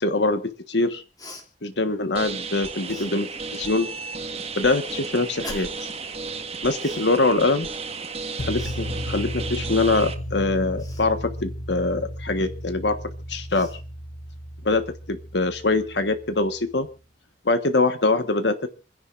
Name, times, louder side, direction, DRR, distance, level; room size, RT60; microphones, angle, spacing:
voice 1, 0.0-0.4 0.7-1.0 1.6-3.9 4.6-5.9 6.6-7.7 8.5-13.0 13.3-13.7 14.6-16.9 17.4-18.7, left 2 dB, 75° left, 9 dB, 1.4 m, -23 dB
Cough, 1.2-1.5 2.9-3.1 5.4-5.9 6.8-7.1 8.6-8.8 10.8-11.1 12.9-13.0 13.5-13.8, left 2 dB, 20° left, 2.9 m, -41 dB
sound 1, 2.1-10.1, right 4 dB, 35° right, 1.6 m, -34 dB
sound 2, 8.4-16.5, equal, 50° left, 1.4 m, -34 dB
28.0 x 11.0 x 2.6 m, 0.32 s
head